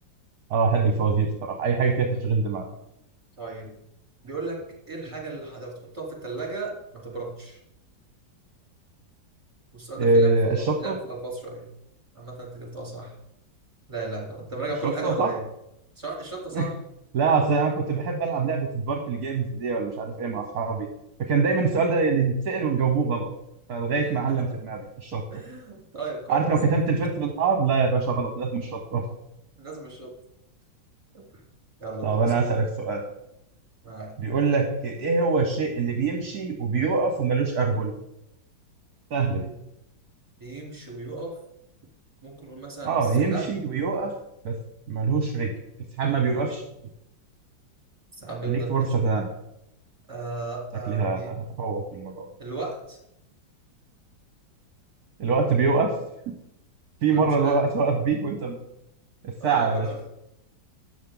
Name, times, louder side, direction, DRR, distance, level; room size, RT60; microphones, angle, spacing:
voice 1, 0.5-2.7 10.0-11.0 14.8-15.3 16.5-16.7 17.1-20.9 21.2-23.3 23.7-25.2 26.3-29.0 32.0-33.0 34.2-37.9 39.1-39.5 42.8-44.2 44.4-44.6 44.9-45.5 46.0-46.6 48.5-49.3 50.9-52.3 55.2-55.9 56.3-56.4 57.0-58.6 59.2-59.9, right 4 dB, 55° right, 3 dB, 1.5 m, -24 dB
voice 2, 3.4-3.7 4.2-4.6 4.9-7.6 9.7-11.7 12.1-13.2 13.9-15.4 15.9-16.8 21.5-21.8 24.0-24.6 25.3-26.5 29.6-30.1 31.1-31.2 31.8-32.4 33.8-34.1 40.4-41.3 42.2-43.5 48.2-49.0 50.1-51.3 52.4-53.0 57.1-57.7 59.4-60.0, right 2 dB, 15° right, -3 dB, 3.4 m, -35 dB
13.0 x 8.3 x 3.9 m, 0.82 s
omnidirectional pair, 2.1 m